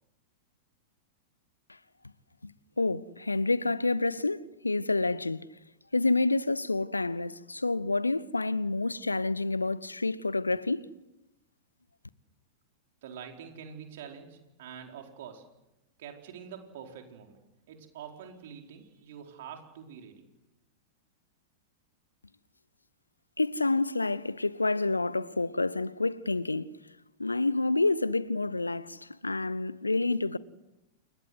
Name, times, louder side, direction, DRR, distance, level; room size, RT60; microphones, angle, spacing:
voice 1, 2.8-5.5 5.9-10.9 23.4-26.8 27.2-30.4, left 3 dB, 80° left, 0.8 m, -28 dB
voice 2, 13.0-15.5 16.0-17.4 17.7-20.2, right 7 dB, 55° right, 4.6 m, -46 dB
29.0 x 22.0 x 7.9 m
figure-of-eight pair, 95°, 0 cm